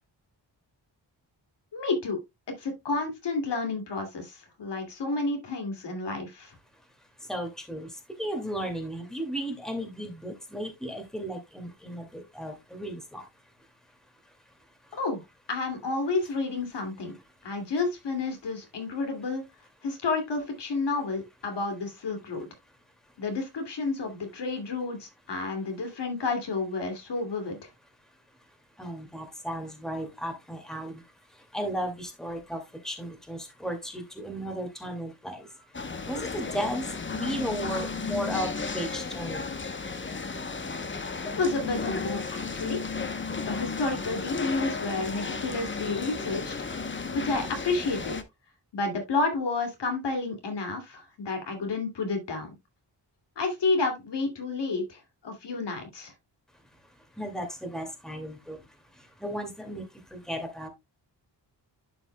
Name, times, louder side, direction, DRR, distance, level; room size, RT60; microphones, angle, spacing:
voice 1, 1.7-2.2 2.6-6.5 14.9-15.2 15.5-17.1 17.4-19.4 19.8-22.5 23.2-27.7 41.2-42.8 43.4-46.5 46.8-48.2 48.7-52.5 53.4-56.1, left 3 dB, 70° left, 2.5 m, -30 dB
voice 2, 7.2-13.3 14.2-15.0 28.5-39.5 56.8-60.7, equal, ahead, 2.2 m, -35 dB
sound 1, 35.7-48.2, left 4 dB, 25° left, 0.9 m, -34 dB
11.5 x 5.3 x 2.2 m
cardioid pair, 85°, 43 cm